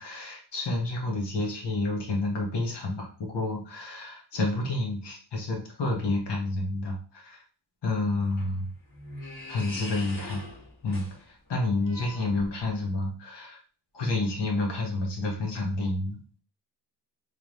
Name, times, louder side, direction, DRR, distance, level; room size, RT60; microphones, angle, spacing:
voice 1, 0.0-7.4 7.8-8.7 9.5-10.4 10.8-13.6 13.9-16.2, left 2 dB, 70° left, 0 dB, 1.5 m, -29 dB
sound 1, 7.9-12.9, left 2 dB, 45° left, 1.8 m, -43 dB
3.6 x 3.5 x 3.1 m, 0.41 s
wide cardioid pair, 135°, 44 cm